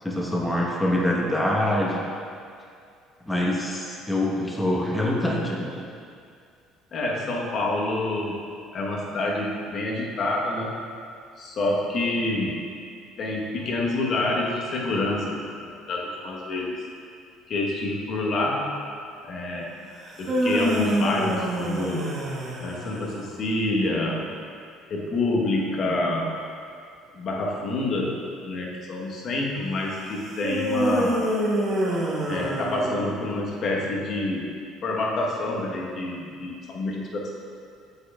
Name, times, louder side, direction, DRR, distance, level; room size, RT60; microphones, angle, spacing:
voice 1, 0.0-2.0 3.3-5.8, left 1 dB, 10° left, -3 dB, 1.1 m, -25 dB
voice 2, 6.9-8.4 8.7-10.7 11.4-12.6 13.2-15.4 15.6-16.8 17.5-18.7 19.2-19.9 20.2-22.1 22.6-24.4 24.9-26.3 27.1-28.2 28.4-31.2 32.3-34.5 34.8-37.3, left 2 dB, 50° left, -2 dB, 1.2 m, -27 dB
sound 1, 20.0-23.2 30.4-33.3, right 1 dB, 45° right, 1.5 m, -26 dB
7.6 x 6.7 x 2.4 m, 2.3 s
hypercardioid pair, 65°, 0 cm